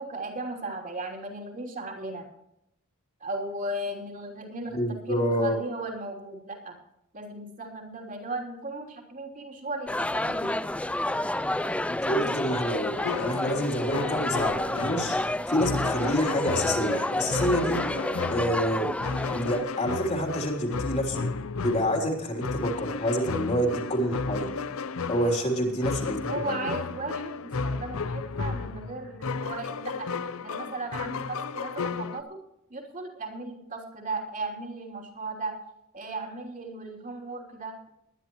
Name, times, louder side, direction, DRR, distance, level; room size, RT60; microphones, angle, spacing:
voice 1, 0.0-2.2 3.2-6.8 7.1-10.6 21.6-21.8 25.1-25.3 26.3-30.1 30.4-32.4 32.7-35.5 35.9-37.7, right 2 dB, 40° right, 1 dB, 3.2 m, -36 dB
voice 2, 4.7-5.6 11.9-15.2 15.5-17.8 18.3-18.9 19.3-21.3 21.6-24.5 25.1-26.5, equal, 30° left, 2 dB, 3.3 m, -27 dB
sound 1, 9.9-19.6, left 1 dB, 5° left, 0.3 m, -30 dB
sound 2, 13.0-32.2, left 4 dB, 65° left, 0.6 m, -33 dB
21.5 x 11.0 x 3.1 m, 0.82 s
head